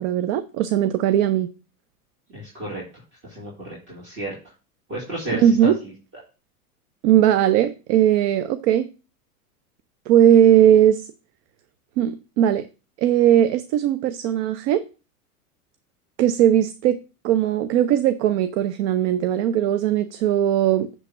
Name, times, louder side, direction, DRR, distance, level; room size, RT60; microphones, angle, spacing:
voice 1, 0.0-1.5 5.3-5.8 7.0-8.9 10.1-11.1 12.0-12.7 13.0-14.8 16.2-17.0 17.2-20.9, right 10 dB, 50° right, 0.7 m, -18 dB
voice 2, 2.3-2.8 3.2-4.3 4.9-5.9, right 1 dB, 25° right, 3.4 m, -32 dB
10.0 x 3.5 x 6.0 m
hypercardioid pair, 95°, 45 cm